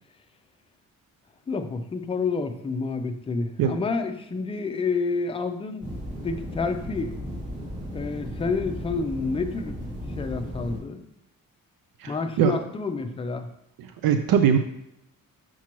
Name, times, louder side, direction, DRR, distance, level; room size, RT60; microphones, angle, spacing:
voice 1, 1.5-5.9 6.2-7.1 7.9-9.8 10.2-11.0 12.1-13.5, left 4 dB, 15° left, 6 dB, 0.4 m, -29 dB
sound 1, 5.8-10.8, equal, 20° right, 2.2 m, -35 dB
voice 2, 12.0-12.5 14.0-14.6, right 8 dB, 75° right, 7 dB, 0.6 m, -21 dB
6.0 x 5.9 x 3.0 m, 0.83 s
cardioid pair, 150°, 35 cm